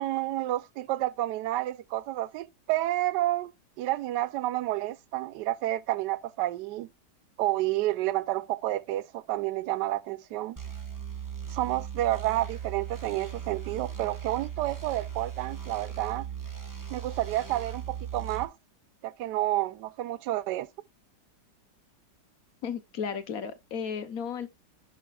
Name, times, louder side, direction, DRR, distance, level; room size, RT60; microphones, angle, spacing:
voice 1, 0.0-3.5 3.8-6.9 7.4-10.6 11.5-16.3 16.9-18.5 19.0-20.7, right 15 dB, 75° right, 1.2 m, -30 dB
sound 1, 10.6-18.4, right 9 dB, 15° right, 1.0 m, -38 dB
voice 2, 22.6-24.5, left 7 dB, 60° left, 1.2 m, -34 dB
11.5 x 6.0 x 2.3 m
omnidirectional pair, 1.9 m